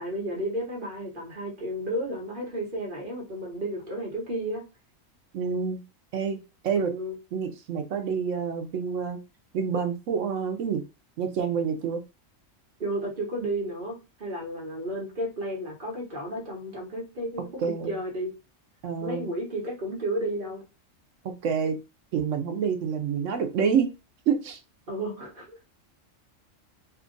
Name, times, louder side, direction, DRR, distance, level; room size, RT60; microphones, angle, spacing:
voice 1, 0.0-4.6 6.9-7.2 12.8-18.3 19.0-20.6 24.9-25.6, right 1 dB, 45° right, 1.2 m, -32 dB
voice 2, 5.3-5.8 6.1-6.4 6.6-6.9 7.3-9.2 9.5-10.8 11.2-12.0 17.6-18.0 18.8-19.3 21.4-21.8 22.1-23.9 24.3-24.6, right 6 dB, 70° right, 1.0 m, -27 dB
2.8 x 2.4 x 3.8 m
omnidirectional pair, 1.3 m